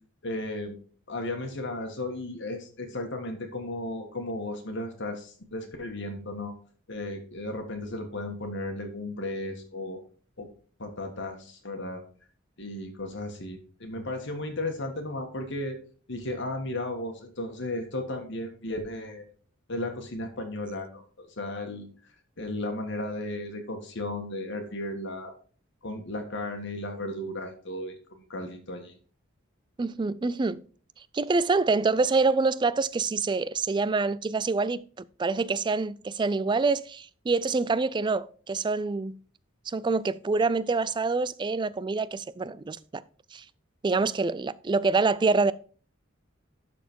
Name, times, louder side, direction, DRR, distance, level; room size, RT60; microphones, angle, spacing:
voice 1, 0.2-0.8 1.1-6.5 6.9-10.0 10.4-10.5 10.8-12.0 12.6-15.8 16.1-19.3 19.7-21.9 22.4-25.3 25.8-29.0, left 1 dB, 60° left, 1.6 m, -35 dB
voice 2, 29.8-30.6 31.1-39.2 39.7-43.0 43.3-43.4 43.8-45.5, right 4 dB, 20° right, 0.3 m, -26 dB
12.0 x 4.3 x 4.5 m
head